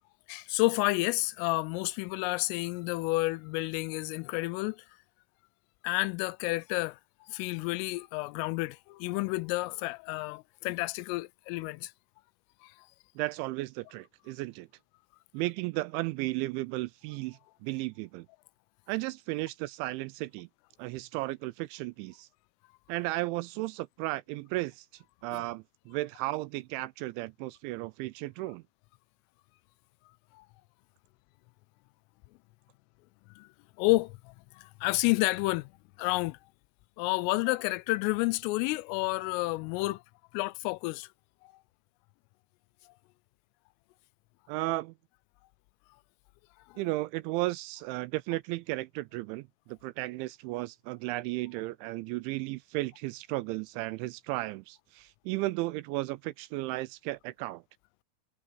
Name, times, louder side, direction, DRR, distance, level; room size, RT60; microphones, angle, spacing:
voice 1, 0.3-4.8 5.8-7.0 7.3-11.9 12.6-12.7 25.3-25.4 30.3-30.5 33.4-33.5 33.8-35.7 36.0-36.4 37.0-40.0 40.3-41.1, left 21 dB, 90° left, 3.2 m, -30 dB
voice 2, 13.2-14.7 15.3-18.3 18.9-20.5 20.8-22.3 22.9-24.9 25.2-28.6 44.5-44.9 46.8-57.6, right 20 dB, 85° right, 2.7 m, -34 dB
omnidirectional pair, 5.7 m